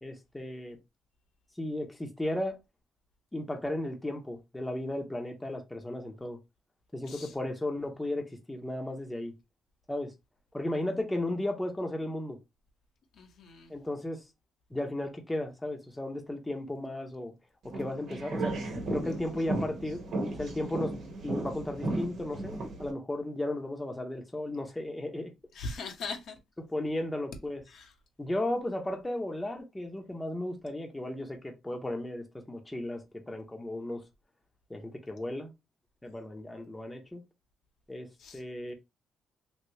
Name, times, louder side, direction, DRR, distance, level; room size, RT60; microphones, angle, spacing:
voice 1, 0.0-0.8 1.6-2.6 3.3-6.4 6.9-9.3 9.9-10.1 10.5-12.4 13.7-14.2 14.7-17.3 17.6-18.6 18.9-20.0 20.4-20.9 21.2-25.3 26.6-27.6 28.2-34.0 34.7-35.5 36.0-37.2 37.9-38.7, left 1 dB, 10° left, 0.9 m, -35 dB
voice 2, 13.2-13.8 25.5-26.4 27.7-27.9 38.2-38.4, left 3 dB, 70° left, 1.0 m, -40 dB
sound 1, 17.7-22.9, right 2 dB, 65° right, 1.1 m, -35 dB
3.2 x 2.8 x 2.7 m
cardioid pair, 90°, 0 cm